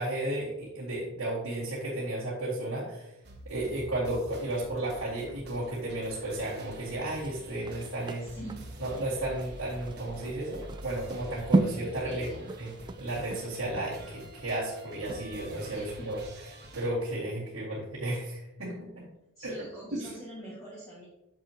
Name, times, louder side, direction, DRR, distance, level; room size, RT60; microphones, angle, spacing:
voice 1, 0.0-3.1 3.5-8.2 8.8-12.3 12.6-12.7 13.0-16.2 16.7-19.0 19.4-19.7 20.0-20.1, right 1 dB, 85° right, -7 dB, 2.0 m, -33 dB
sound 1, 3.2-16.9, equal, 50° right, 1.5 m, -47 dB
sound 2, 7.2-15.7 16.1-16.2, right 2 dB, 20° right, 0.3 m, -34 dB
voice 2, 8.2-8.7 12.0-12.5 15.7-16.2 19.4-21.0, right 1 dB, 15° left, -7 dB, 1.8 m, -44 dB
8.7 x 6.7 x 2.9 m, 0.92 s
head